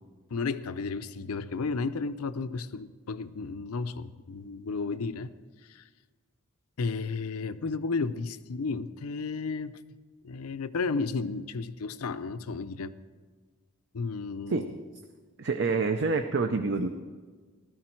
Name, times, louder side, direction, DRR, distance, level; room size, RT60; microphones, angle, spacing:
voice 1, 0.3-5.3 5.6-5.9 6.8-9.8 10.2-12.9 13.9-14.7, left 4 dB, 85° left, 0.6 m, -33 dB
voice 2, 15.4-16.9, right 4 dB, 55° right, 0.5 m, -27 dB
15.5 x 12.5 x 4.5 m
head